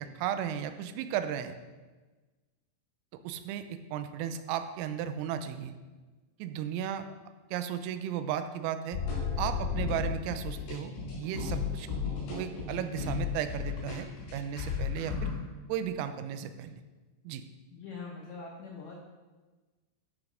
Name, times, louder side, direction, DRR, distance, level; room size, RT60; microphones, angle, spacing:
voice 1, 0.0-1.5 3.2-5.7 6.4-7.0 7.5-9.0 9.4-10.9 11.2-11.9 12.3-15.3 15.7-16.8 17.2-17.4, right 9 dB, 85° right, 9 dB, 3.3 m, -35 dB
sound 1, 8.9-15.3, left 6 dB, 70° left, 6.2 m, -34 dB
voice 2, 17.7-19.0, left 4 dB, 85° left, -2 dB, 2.1 m, -43 dB
13.0 x 5.1 x 5.0 m, 1.3 s
omnidirectional pair, 5.9 m